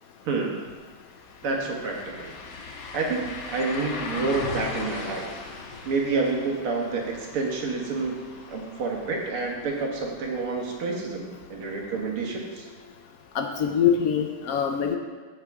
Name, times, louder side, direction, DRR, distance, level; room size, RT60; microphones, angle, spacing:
voice 1, 0.2-0.6 1.4-2.3 2.9-5.3 5.8-8.2 8.5-12.7, right 3 dB, 80° right, 0 dB, 2.4 m, -28 dB
sound 1, 1.1-10.9 11.2-11.3 14.1-14.2, left 3 dB, 70° left, 1.9 m, -39 dB
voice 2, 13.3-15.0, left 8 dB, 90° left, 4 dB, 0.7 m, -24 dB
15.5 x 6.5 x 3.6 m, 1.5 s
omnidirectional pair, 2.4 m